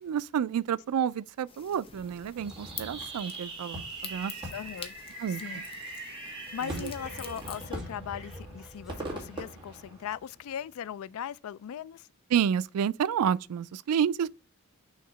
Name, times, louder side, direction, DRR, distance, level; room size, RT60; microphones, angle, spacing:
voice 1, 0.0-4.3 5.2-5.4 6.6-6.9 12.3-14.3, right 8 dB, 85° right, 0.3 m, -29 dB
sound 1, 1.5-7.6, left 6 dB, 25° left, 0.8 m, -47 dB
Fireworks, 2.4-10.5, right 1 dB, 20° right, 2.0 m, -41 dB
Breathing, 2.5-2.7 3.0-9.5 10.0-10.1, right 3 dB, ahead, 1.1 m, -55 dB
voice 2, 4.5-5.0 5.3-5.7 6.5-12.1, left 9 dB, 70° left, 0.3 m, -39 dB
6.4 x 2.9 x 5.5 m
head